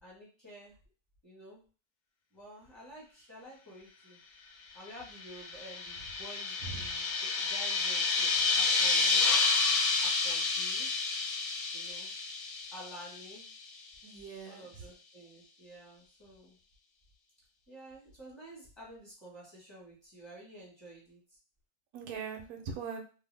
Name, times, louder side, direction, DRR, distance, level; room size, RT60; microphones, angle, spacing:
voice 1, 0.0-0.7 1.2-1.6 2.3-4.2 4.7-9.3 10.0-10.9 11.7-12.1 12.7-13.4 14.4-16.6 17.7-21.4, right 1 dB, 20° left, -5 dB, 1.2 m, -51 dB
sound 1, 5.1-13.5, left 4 dB, 75° left, 1.0 m, -30 dB
voice 2, 14.0-14.6 21.9-23.0, right 5 dB, 75° right, 3 dB, 1.0 m, -40 dB
2.6 x 2.3 x 3.3 m, 0.36 s
omnidirectional pair, 1.6 m